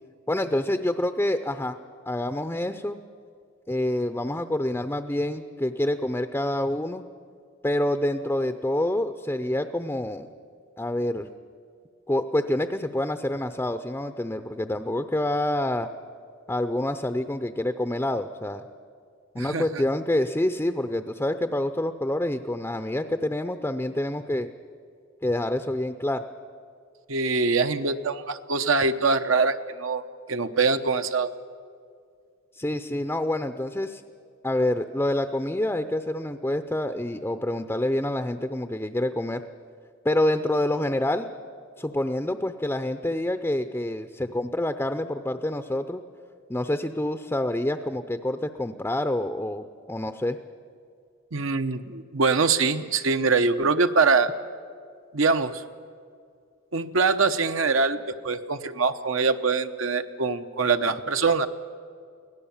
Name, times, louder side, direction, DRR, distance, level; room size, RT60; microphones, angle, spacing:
voice 1, 0.3-1.8 2.1-3.0 3.7-7.0 7.6-10.3 10.8-11.3 12.1-15.9 16.5-18.6 19.3-24.5 25.2-26.2 32.6-34.0 34.4-39.4 40.0-41.3 41.8-46.0 46.5-50.4, left 1 dB, 10° left, 8 dB, 0.6 m, -27 dB
voice 2, 19.4-19.8 27.1-30.0 30.3-31.3 51.3-54.3 55.1-55.6 56.7-61.5, right 4 dB, 75° right, 8 dB, 0.9 m, -23 dB
24.0 x 17.5 x 7.2 m, 2.2 s
head